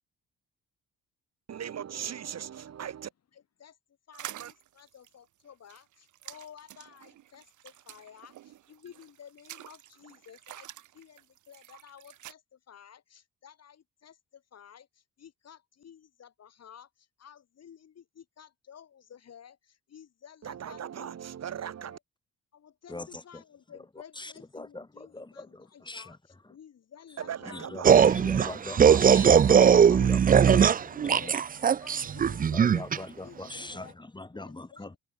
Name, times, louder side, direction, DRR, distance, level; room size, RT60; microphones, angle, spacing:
voice 1, 1.5-3.1 4.3-4.5 20.4-22.0 27.2-28.6, right 9 dB, 60° right, 4.6 m, -39 dB
voice 2, 3.3-3.8 4.1-21.1 21.8-22.0 22.5-28.3 28.7-28.9 29.3-29.6 29.9-34.0 34.3-35.0, left 8 dB, 55° left, 7.4 m, -53 dB
sound 1, 4.1-12.3, right 13 dB, 80° right, 3.9 m, -48 dB
voice 3, 22.9-23.4 24.1-26.2 27.5-31.3 31.7-31.8 32.0-32.1 32.5-35.0, left 2 dB, 15° left, 3.8 m, -42 dB
sound 2, 27.8-33.0, right 7 dB, 30° right, 0.5 m, -19 dB
cardioid pair, 90°, 30 cm